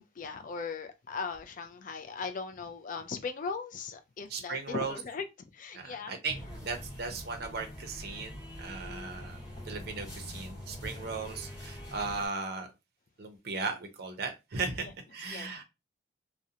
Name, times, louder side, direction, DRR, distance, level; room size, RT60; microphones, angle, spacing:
voice 1, 0.0-5.3 5.5-6.2 14.8-14.9 15.3-15.5, left 5 dB, 40° left, 0.3 m, -38 dB
voice 2, 4.3-4.9 5.7-9.4 9.6-12.7 13.2-15.6, right 4 dB, 50° right, 0.5 m, -37 dB
sound 1, 6.3-12.3, equal, 20° left, 1.0 m, -44 dB
2.4 x 2.0 x 2.7 m
head